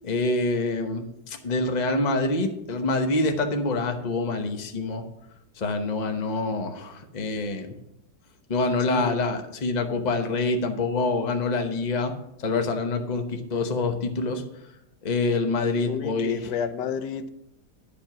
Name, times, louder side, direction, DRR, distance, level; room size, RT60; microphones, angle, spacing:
voice 1, 0.0-5.0 5.6-7.7 8.5-12.1 12.4-14.4 15.0-16.5, left 3 dB, 30° left, 5 dB, 0.9 m, -26 dB
voice 2, 15.9-17.3, left 7 dB, 80° left, 12 dB, 1.2 m, -30 dB
10.5 x 5.2 x 6.0 m, 0.82 s
omnidirectional pair, 1.8 m